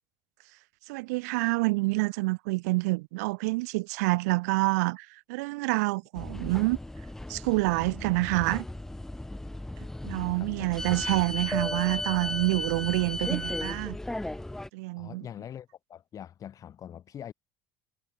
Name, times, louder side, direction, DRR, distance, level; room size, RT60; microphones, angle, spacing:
voice 1, 0.9-6.8 7.3-8.7 10.0-14.0 14.7-15.3, right 25 dB, 90° right, 1.8 m, -27 dB
sound 1, 6.2-14.7, left 1 dB, 5° left, 0.5 m, -36 dB
voice 2, 10.0-10.9 15.0-17.3, left 9 dB, 40° left, 2.5 m, -44 dB
supercardioid pair, 110°, 9 cm